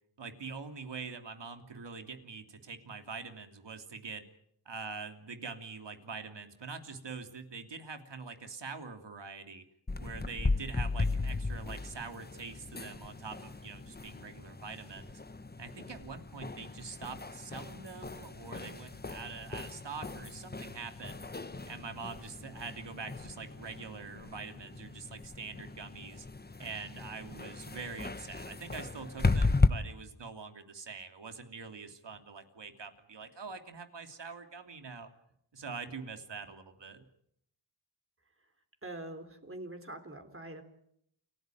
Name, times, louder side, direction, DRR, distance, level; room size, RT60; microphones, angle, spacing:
voice 1, 0.2-4.3 4.6-9.6 10.0-15.2 15.6-21.3 21.6-26.3 26.6-35.1 35.5-37.0, right 5 dB, 65° right, 7 dB, 3.1 m, -44 dB
sound 1, 9.9-29.7, left 3 dB, 20° left, 1.2 m, -36 dB
voice 2, 38.8-40.6, right 2 dB, 30° right, 6 dB, 3.8 m, -44 dB
29.0 x 16.0 x 9.3 m, 0.74 s
wide cardioid pair, 80°, 46 cm